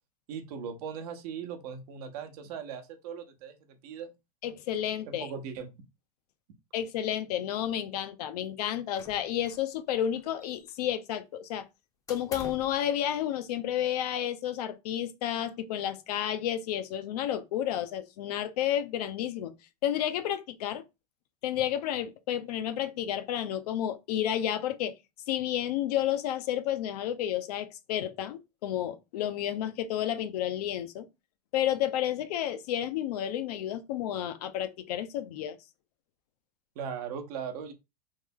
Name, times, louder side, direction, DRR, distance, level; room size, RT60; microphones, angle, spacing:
voice 1, 0.3-3.6 3.8-4.1 5.1-5.7 36.8-37.7, right 7 dB, 65° right, 0.8 m, -38 dB
voice 2, 4.4-5.3 6.7-11.7 12.1-19.5 19.8-20.8 21.4-24.9 25.3-31.1 31.5-35.6, left 11 dB, 70° left, 0.5 m, -31 dB
sound 1, 9.0-9.7 10.0-10.9 12.1-12.8, left 4 dB, 15° left, 0.6 m, -46 dB
3.2 x 2.0 x 3.5 m
supercardioid pair, 135°, 21 cm